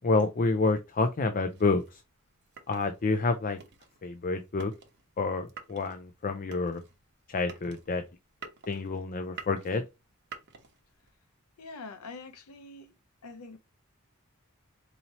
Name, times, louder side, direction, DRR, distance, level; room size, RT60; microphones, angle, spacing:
voice 1, 0.0-2.0 2.7-3.6 4.0-4.7 5.2-6.8 7.3-8.0 8.7-9.8, left 3 dB, 40° left, 0.4 m, -28 dB
sound 1, 1.5-11.1, right 6 dB, 50° right, 0.9 m, -50 dB
voice 2, 11.6-12.9 13.2-13.6, left 3 dB, 85° left, 0.7 m, -44 dB
4.2 x 2.8 x 2.8 m
head